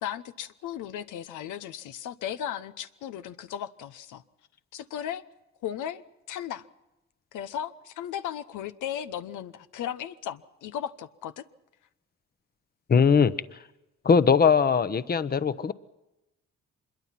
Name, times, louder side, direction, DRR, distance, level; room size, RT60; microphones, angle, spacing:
voice 1, 0.0-4.2 4.7-5.2 5.6-6.7 7.3-11.4, left 10 dB, 85° left, 11 dB, 1.0 m, -36 dB
voice 2, 12.9-13.3 14.0-15.7, left 6 dB, 30° left, 14 dB, 0.9 m, -20 dB
25.0 x 22.0 x 5.9 m, 0.96 s
cardioid pair, 90°, 30 cm